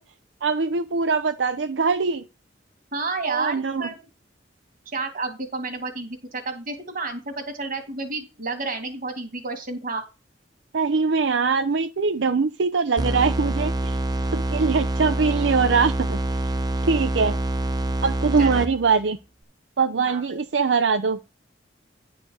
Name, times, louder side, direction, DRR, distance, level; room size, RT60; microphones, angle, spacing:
voice 1, 0.4-2.2 3.2-3.9 10.7-14.0 14.3-16.2 16.8-17.4 18.0-19.2 19.8-21.2, right 4 dB, 85° right, 9 dB, 0.6 m, -22 dB
voice 2, 2.9-4.0 4.9-10.1 18.4-18.6 20.1-20.4, right 3 dB, 50° right, 7 dB, 2.1 m, -31 dB
sound 1, 13.0-19.0, right 2 dB, 25° right, 0.7 m, -26 dB
9.9 x 4.7 x 6.3 m, 0.29 s
head